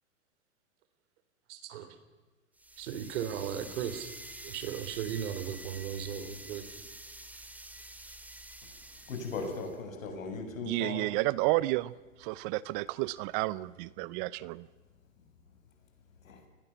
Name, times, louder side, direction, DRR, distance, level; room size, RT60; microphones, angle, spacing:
voice 1, 1.5-1.9 2.8-4.1 4.5-6.6, right 9 dB, 60° right, 11 dB, 3.8 m, -36 dB
sound 1, 2.6-9.8, right 1 dB, 5° right, 2.4 m, -48 dB
voice 2, 9.1-11.1 16.2-16.4, left 4 dB, 75° left, 5 dB, 7.4 m, -38 dB
voice 3, 10.7-14.7, right 20 dB, 40° right, 20 dB, 0.7 m, -31 dB
29.0 x 21.0 x 7.1 m, 1.3 s
hypercardioid pair, 110°, 40 cm